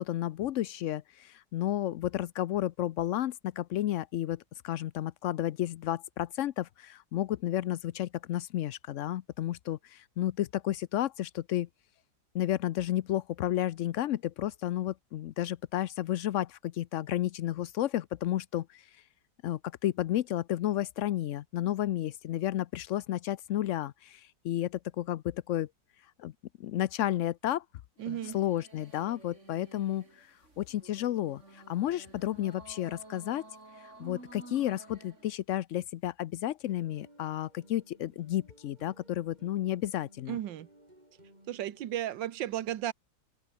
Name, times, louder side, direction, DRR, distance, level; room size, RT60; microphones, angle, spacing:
voice 1, 0.0-11.7 12.3-18.8 19.4-25.7 26.2-26.3 26.6-27.6 28.1-30.3 30.6-33.4 34.0-40.3, left 13 dB, 90° left, 0.6 m, -32 dB
sound 1, 28.0-35.3, right 2 dB, 40° right, 5.1 m, -52 dB
voice 2, 28.0-28.4 40.3-40.7 41.5-42.9, right 12 dB, 80° right, 1.7 m, -34 dB
sound 2, 36.7-42.0, right 1 dB, 20° right, 7.6 m, -59 dB
open air
omnidirectional pair, 2.0 m